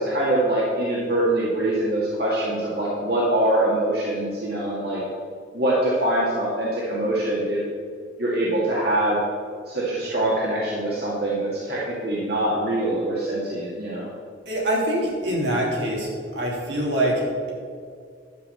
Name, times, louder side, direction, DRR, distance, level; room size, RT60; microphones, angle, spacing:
voice 1, 0.0-5.0 5.5-7.6 8.2-9.2 9.7-14.1, right 1 dB, 60° right, -6 dB, 2.0 m, -24 dB
voice 2, 14.5-17.5, right 1 dB, 85° right, -3 dB, 3.3 m, -24 dB
11.5 x 6.0 x 7.5 m, 2.1 s
head